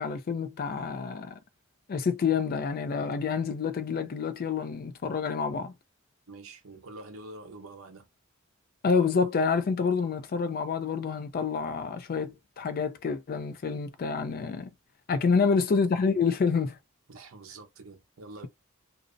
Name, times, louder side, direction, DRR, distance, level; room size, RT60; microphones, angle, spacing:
voice 1, 0.0-1.4 1.9-5.7 8.8-14.7 15.1-16.8, left 5 dB, 45° left, 0.4 m, -28 dB
voice 2, 6.3-8.1 15.4-15.5 17.1-18.5, right 2 dB, 75° right, 0.7 m, -46 dB
2.5 x 2.0 x 2.4 m
head